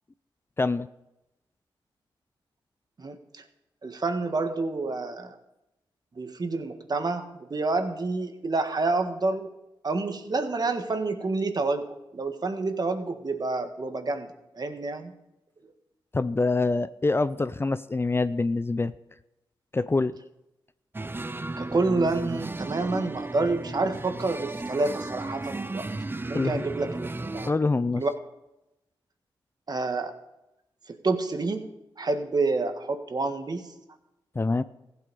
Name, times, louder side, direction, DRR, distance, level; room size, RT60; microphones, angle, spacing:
voice 1, 0.6-0.9 16.1-18.9 19.7-20.1 26.3-26.6 27.5-28.0 34.4-34.6, left 3 dB, 25° left, 14 dB, 0.5 m, -25 dB
voice 2, 3.0-3.4 3.8-5.4 6.1-9.5 9.8-14.3 14.5-15.1 21.6-25.9 26.2-27.5 27.9-28.1 29.7-30.1 30.9-31.7 32.0-33.7, right 3 dB, 45° right, 7 dB, 1.6 m, -28 dB
sound 1, 20.9-27.5, right 2 dB, 25° right, 0.6 m, -34 dB
15.0 x 8.4 x 5.4 m, 0.91 s
cardioid pair, 55°, 9 cm